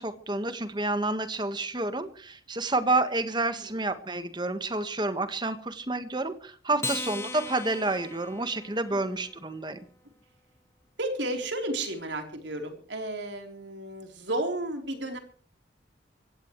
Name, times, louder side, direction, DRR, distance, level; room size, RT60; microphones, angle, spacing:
voice 1, 0.0-9.8, right 2 dB, 25° right, 10 dB, 1.5 m, -29 dB
Acoustic guitar, 6.8-9.5, left 3 dB, 15° left, 0.8 m, -38 dB
voice 2, 11.0-15.2, right 1 dB, 85° right, 4 dB, 3.8 m, -33 dB
24.0 x 16.5 x 3.2 m, 0.43 s
head